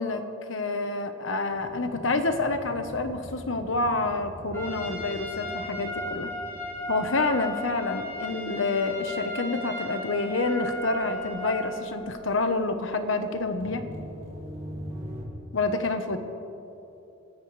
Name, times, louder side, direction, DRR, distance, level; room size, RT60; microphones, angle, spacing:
voice 1, 0.0-6.3 6.9-13.9 15.5-16.2, left 3 dB, 70° left, 8 dB, 1.2 m, -28 dB
sound 1, 1.5-15.2, equal, 35° right, 3.2 m, -44 dB
Trumpet, 4.5-11.9, equal, 15° left, 3.6 m, -36 dB
27.0 x 13.0 x 3.4 m, 2.9 s
head